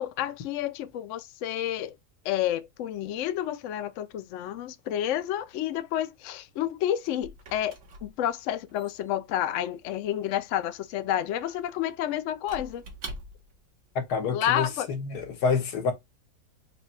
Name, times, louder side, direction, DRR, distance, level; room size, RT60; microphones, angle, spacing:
voice 1, 0.0-2.0 2.2-12.8 14.3-14.9, left 11 dB, 65° left, 0.8 m, -30 dB
Squeak / Wood, 6.5-13.7, right 1 dB, 60° right, 1.5 m, -46 dB
voice 2, 13.9-15.9, left 5 dB, 85° left, 1.6 m, -28 dB
3.9 x 2.2 x 4.2 m
omnidirectional pair, 1.6 m